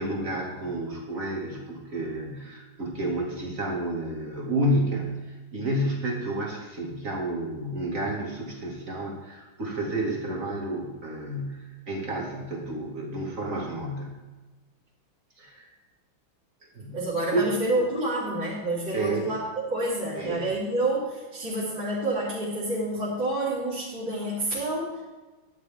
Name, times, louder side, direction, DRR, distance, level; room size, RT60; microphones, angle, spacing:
voice 1, 0.0-14.1 15.4-15.7 16.7-17.0 17.3-17.4 18.9-19.3 20.2-20.4, right 1 dB, 40° right, -1 dB, 2.7 m, -30 dB
voice 2, 16.9-19.4 19.7-25.0, right 1 dB, 60° right, -11 dB, 4.5 m, -28 dB
12.5 x 11.5 x 3.7 m, 1.2 s
omnidirectional pair, 2.2 m